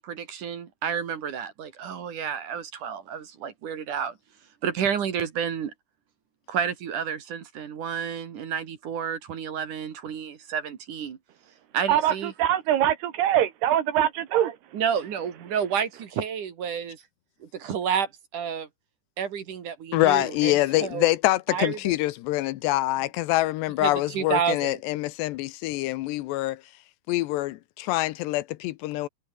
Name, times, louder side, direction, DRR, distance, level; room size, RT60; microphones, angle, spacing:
voice 1, 0.0-4.1 4.6-5.7 6.5-11.2 11.7-12.3 14.7-17.0 17.4-18.7 19.2-21.1 21.5-21.8 23.8-24.8, right 7 dB, 55° right, 3.2 m, -30 dB
voice 2, 11.9-14.5, right 11 dB, 70° right, 3.5 m, -23 dB
voice 3, 19.9-26.6 27.1-29.1, left 17 dB, 80° left, 2.9 m, -25 dB
omnidirectional pair, 5.1 m